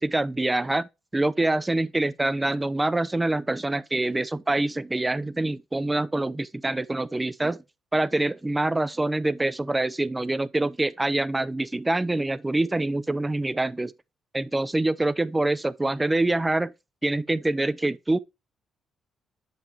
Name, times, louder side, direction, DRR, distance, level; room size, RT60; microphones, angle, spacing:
voice 1, 0.0-7.6 7.9-13.9 14.3-16.7 17.0-18.2, right 2 dB, 15° right, 0.5 m, -25 dB
8.4 x 5.2 x 2.9 m
cardioid pair, 90°, 0 cm